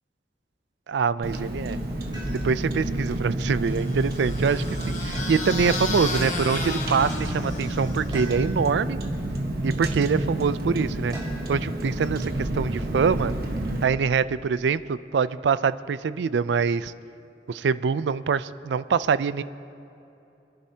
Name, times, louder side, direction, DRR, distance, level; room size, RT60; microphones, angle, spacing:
voice 1, 0.9-1.8 2.3-9.0 9.6-11.1 11.5-13.3 13.8-16.9 17.5-19.4, right 5 dB, 85° right, 16 dB, 0.4 m, -24 dB
Car, 1.2-13.8, right 1 dB, 55° right, 1.3 m, -29 dB
sound 1, 2.1-2.8 5.1-5.9 8.1-8.8 11.1-11.6 13.3-14.0, equal, 25° right, 3.3 m, -41 dB
sound 2, 3.7-8.2, left 3 dB, 45° left, 1.2 m, -33 dB
28.0 x 10.5 x 2.8 m, 2.8 s
head